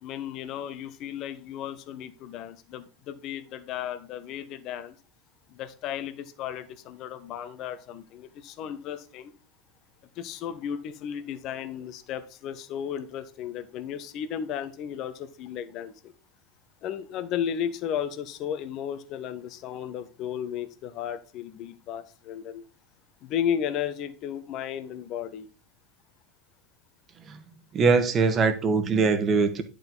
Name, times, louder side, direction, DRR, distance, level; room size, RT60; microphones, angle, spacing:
voice 1, 0.0-5.0 5.5-9.3 10.2-16.1 16.8-22.6 23.2-25.5, left 9 dB, 50° left, 12 dB, 1.1 m, -34 dB
voice 2, 27.7-29.6, right 4 dB, 35° right, 9 dB, 1.5 m, -22 dB
10.5 x 5.1 x 4.0 m, 0.35 s
hypercardioid pair, 85°, 0 cm